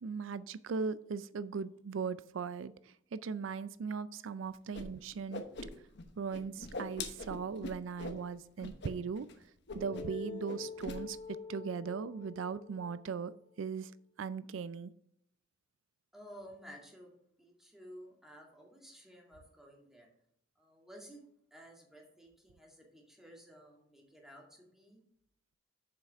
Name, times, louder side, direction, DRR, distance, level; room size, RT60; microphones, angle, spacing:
voice 1, 0.0-2.7 3.1-5.4 6.2-9.3 9.7-11.2 11.5-13.3 13.6-13.9 14.2-14.9, right 5 dB, 85° right, 16 dB, 0.4 m, -38 dB
Whoosh swoosh swish, 4.7-4.8 5.1-6.0 6.3-8.2 8.6-8.9 9.2-9.3 9.7-10.2 10.4-11.0, left 3 dB, 65° left, 1.1 m, -42 dB
sound 1, 9.7-13.5, left 5 dB, 25° left, 1.3 m, -46 dB
voice 2, 16.1-17.1 17.4-20.1 20.6-21.2 21.5-25.0, equal, ahead, -1 dB, 2.1 m, -54 dB
7.6 x 5.8 x 5.5 m, 0.68 s
head